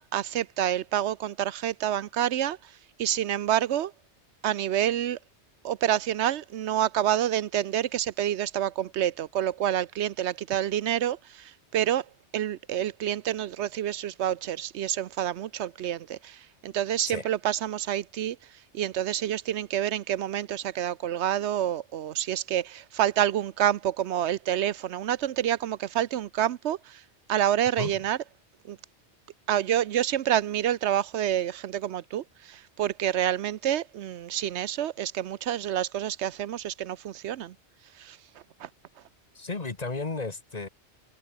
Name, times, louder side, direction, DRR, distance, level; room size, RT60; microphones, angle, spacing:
voice 1, 0.0-2.7 3.0-3.9 4.4-5.2 5.6-12.1 12.3-18.4 18.7-27.0 27.3-28.2 28.6-28.8 29.5-37.5 38.0-38.2 38.6-38.7, right 11 dB, 80° right, 0.9 m, -28 dB
voice 2, 39.3-40.7, left 3 dB, 35° left, 1.5 m, -33 dB
omnidirectional pair, 1.2 m